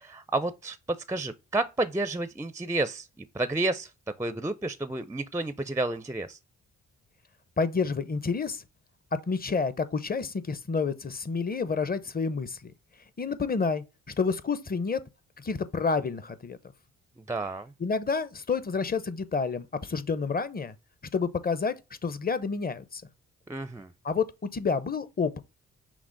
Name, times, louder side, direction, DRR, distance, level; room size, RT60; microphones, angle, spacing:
voice 1, 0.0-3.9 4.2-6.4 17.3-17.7 23.5-23.9, right 2 dB, 10° right, 0.4 m, -31 dB
voice 2, 7.6-8.6 9.3-12.7 13.2-13.8 14.2-15.0 15.4-16.6 17.8-20.7 21.1-21.8 22.0-23.0 24.0-24.3 24.5-25.4, left 5 dB, 30° left, 0.7 m, -29 dB
6.0 x 2.1 x 3.9 m
supercardioid pair, 55°, 33 cm